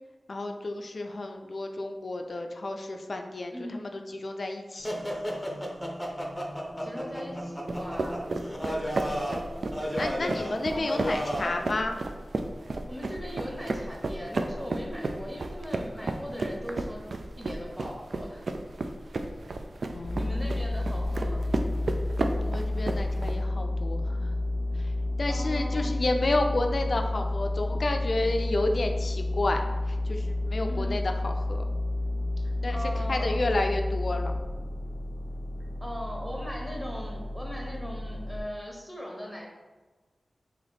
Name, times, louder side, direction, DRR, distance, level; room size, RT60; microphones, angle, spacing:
voice 1, 0.3-5.0 9.2-9.3 9.9-12.0 19.9-20.4 22.4-24.3 24.8-24.9 25.2-29.6 29.9-31.6 32.6-32.8 33.1-34.3, left 2 dB, 60° left, 4 dB, 0.4 m, -31 dB
voice 2, 3.5-3.9 6.8-8.3 10.7-11.3 12.9-17.0 17.4-18.4 20.1-21.5 25.3-26.0 30.7-31.0 32.7-33.4 35.8-39.5, equal, 5° right, -2 dB, 1.1 m, -39 dB
sound 1, 4.8-11.6, equal, 15° left, 0.7 m, -33 dB
sound 2, 7.7-23.3, right 2 dB, 70° right, 0.3 m, -33 dB
sound 3, 20.0-38.4, left 2 dB, 20° right, 1.1 m, -30 dB
3.2 x 3.0 x 4.0 m, 1.2 s
cardioid pair, 50°, 0 cm